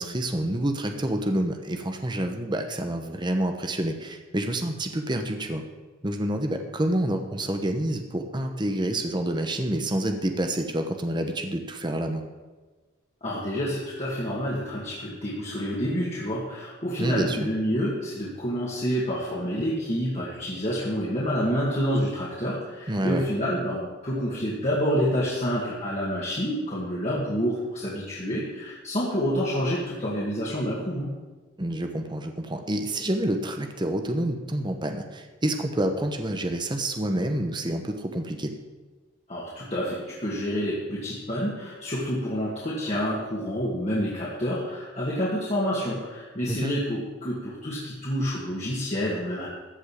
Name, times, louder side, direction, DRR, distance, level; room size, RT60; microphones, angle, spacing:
voice 1, 0.0-5.6 6.0-12.2 17.0-17.5 22.9-23.2 31.6-38.5 46.5-46.7, right 1 dB, 25° right, 5 dB, 1.0 m, -28 dB
voice 2, 13.2-31.1 39.3-49.5, equal, 35° left, -6 dB, 2.2 m, -28 dB
14.5 x 5.4 x 8.5 m, 1.3 s
head